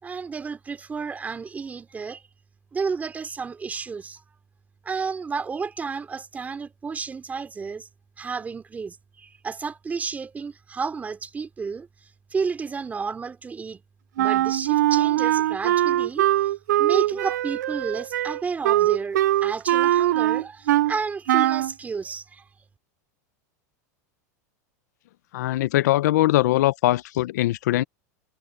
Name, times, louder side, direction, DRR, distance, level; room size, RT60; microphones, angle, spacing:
voice 1, 0.0-2.2 2.7-4.2 4.8-7.9 8.2-11.9 12.3-13.8 14.2-22.4, right 5 dB, 15° right, 3.0 m, -32 dB
Wind instrument woodwind instrument, 14.2-21.0 21.3-21.7, right 14 dB, 90° right, 0.4 m, -21 dB
voice 2, 25.3-27.8, left 16 dB, 80° left, 0.7 m, -21 dB
supercardioid pair, 125°, 9 cm